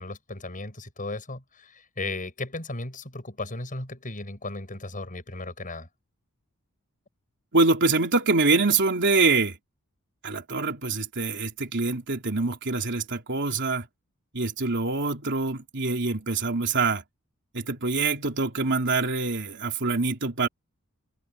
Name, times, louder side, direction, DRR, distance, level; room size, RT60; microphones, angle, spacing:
voice 1, 0.0-5.9, left 2 dB, 40° left, 6.6 m, -36 dB
voice 2, 7.5-9.5 10.2-13.9 14.3-17.0 17.5-20.5, right 3 dB, 55° right, 3.3 m, -25 dB
head